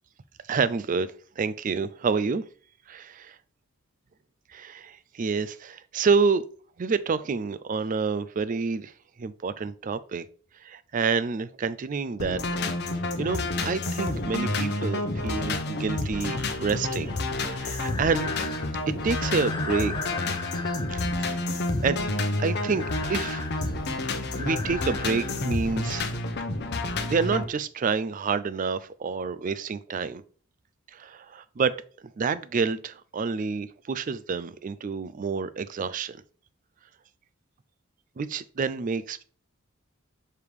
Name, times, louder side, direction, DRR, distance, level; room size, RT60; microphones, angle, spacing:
voice 1, 0.5-1.1 1.4-2.4 2.9-3.3 4.5-6.4 6.8-8.9 9.2-10.2 10.6-12.4 13.2-17.1 17.4-18.3 19.0-19.9 20.9-21.5 21.8-22.0 22.4-22.8 23.1-23.5 24.4-26.0 27.1-30.2 30.9-31.7 32.2-36.2 38.2-39.2, right 5 dB, 40° right, 0.4 m, -28 dB
sound 1, 12.2-27.4, left 2 dB, 55° left, 0.9 m, -29 dB
Breathing, 17.0-26.0, left 4 dB, 20° left, 0.6 m, -39 dB
6.7 x 3.5 x 4.7 m
head